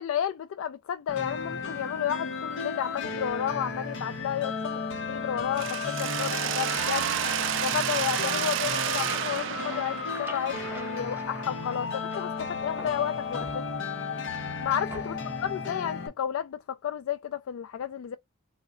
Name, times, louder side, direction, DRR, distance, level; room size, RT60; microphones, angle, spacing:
voice 1, 0.0-4.8 5.1-7.1 7.6-13.6 14.6-18.2, left 9 dB, 80° left, 0.3 m, -32 dB
sound 1, 1.1-16.1, left 4 dB, 60° left, 0.8 m, -34 dB
Mechanisms, 5.6-11.4, right 11 dB, 60° right, 0.3 m, -31 dB
sound 2, 9.0-12.4 12.8-14.1 14.9-15.4, right 1 dB, 10° right, 0.8 m, -46 dB
3.6 x 2.1 x 3.6 m
head